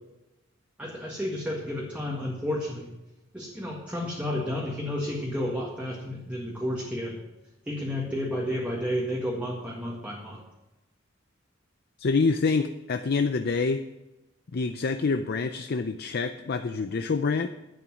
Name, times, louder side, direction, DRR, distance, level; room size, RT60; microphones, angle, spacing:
voice 1, 0.8-2.9 3.3-7.2 7.7-10.4, left 1 dB, 5° right, -3 dB, 1.8 m, -31 dB
voice 2, 12.0-13.8 14.5-17.5, left 4 dB, 50° left, 8 dB, 0.5 m, -26 dB
11.0 x 8.9 x 6.2 m, 1.0 s
head